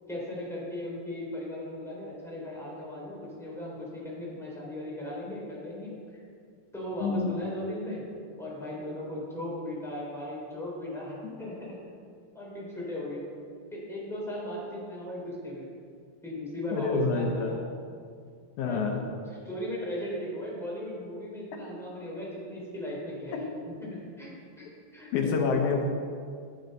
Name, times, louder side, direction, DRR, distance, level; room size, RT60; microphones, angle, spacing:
voice 1, 0.1-6.2 6.7-8.0 8.4-11.7 12.3-13.2 13.7-15.7 16.2-17.6 18.7-19.0 19.4-23.4 23.8-24.3 24.6-25.3, left 1 dB, ahead, -5 dB, 3.2 m, -37 dB
voice 2, 7.0-7.3 11.2-11.4 16.7-17.6 18.6-19.0 23.3-23.4 25.1-25.8, left 4 dB, 80° left, 3 dB, 2.4 m, -27 dB
11.0 x 9.9 x 5.4 m, 2.2 s
omnidirectional pair, 3.4 m